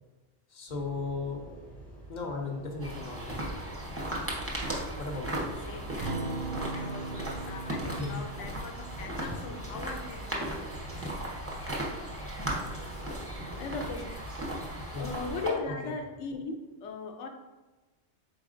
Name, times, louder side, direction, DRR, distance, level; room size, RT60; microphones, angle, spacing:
voice 1, 0.5-1.4 2.1-3.4 5.0-5.4 7.8-8.2 14.9-15.1 15.7-15.8, left 3 dB, 50° left, 1 dB, 0.6 m, -36 dB
sound 1, 0.7-13.8, right 1 dB, 30° left, 1.1 m, -49 dB
sound 2, 2.8-15.5, right 1 dB, 15° right, 0.6 m, -36 dB
voice 2, 4.9-6.3 6.6-10.7 12.4-13.2 13.6-14.1 15.0-17.3, left 4 dB, 75° left, 5 dB, 0.9 m, -40 dB
Acoustic guitar, 6.0-10.7, right 3 dB, 60° right, 0.6 m, -40 dB
4.8 x 3.9 x 2.5 m, 1.2 s
omnidirectional pair, 1.3 m